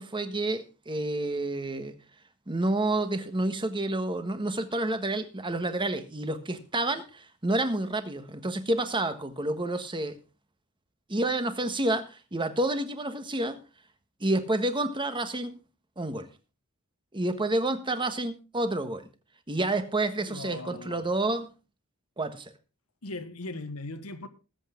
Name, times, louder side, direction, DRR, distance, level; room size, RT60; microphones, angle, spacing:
voice 1, 0.0-2.0 2.5-10.2 11.1-13.6 14.2-15.5 16.0-16.3 17.1-19.1 19.5-21.5 22.2-22.5, right 2 dB, 25° right, 1.4 m, -29 dB
voice 2, 20.2-21.1 23.0-24.3, left 2 dB, 80° left, 1.5 m, -39 dB
20.0 x 8.1 x 3.8 m
head